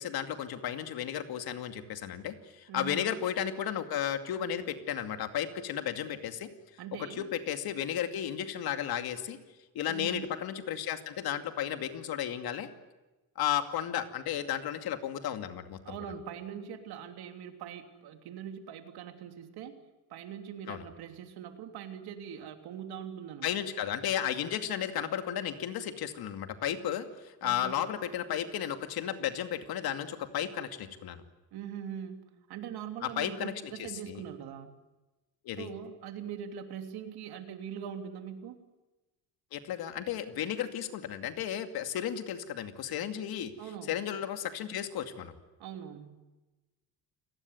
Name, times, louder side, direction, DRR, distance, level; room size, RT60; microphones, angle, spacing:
voice 1, 0.0-6.5 7.2-9.4 9.7-12.7 13.4-15.9 20.7-20.8 23.4-31.2 33.0-33.5 33.8-34.2 35.4-35.7 39.5-43.5 43.9-45.3, left 10 dB, 70° left, 7 dB, 2.5 m, -34 dB
voice 2, 2.7-3.0 6.8-7.3 9.9-10.2 15.8-19.8 20.1-23.5 27.4-27.8 31.5-34.8 35.6-38.6 43.6-44.0 45.6-46.2, right 8 dB, 75° right, 6 dB, 3.1 m, -42 dB
28.5 x 19.0 x 9.5 m, 1.1 s
cardioid pair, 150°, 38 cm